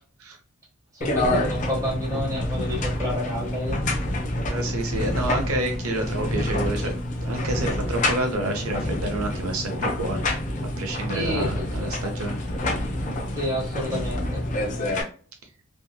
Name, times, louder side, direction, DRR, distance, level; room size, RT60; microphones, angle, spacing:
voice 1, 0.9-3.8 11.1-12.0 13.3-14.4, equal, 15° right, -4 dB, 1.3 m, -30 dB
sound 1, 1.0-15.0, left 1 dB, 35° left, 0.5 m, -27 dB
voice 2, 4.4-6.9 7.2-10.2 10.8-12.4, right 1 dB, 90° right, 4 dB, 0.7 m, -28 dB
2.7 x 2.7 x 2.2 m, 0.42 s
head